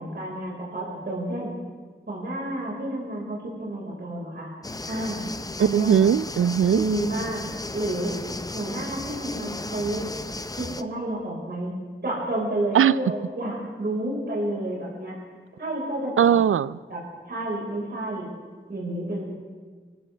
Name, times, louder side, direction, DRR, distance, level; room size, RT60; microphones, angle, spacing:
voice 1, 0.0-1.5 2.1-4.5 4.9-5.3 5.6-5.9 6.7-7.5 7.7-8.1 8.5-10.0 10.8-11.7 12.0-15.1 15.6-16.3 16.9-17.0 17.3-18.3 18.7-19.2, right 1 dB, 55° right, -4 dB, 4.9 m, -30 dB
sound 1, 4.6-10.8, left 2 dB, 20° left, 0.5 m, -35 dB
voice 2, 5.6-6.8 12.7-13.0 16.2-16.7, right 9 dB, 80° right, 18 dB, 0.4 m, -19 dB
25.0 x 16.0 x 3.4 m, 1.5 s
wide cardioid pair, 95°, 21 cm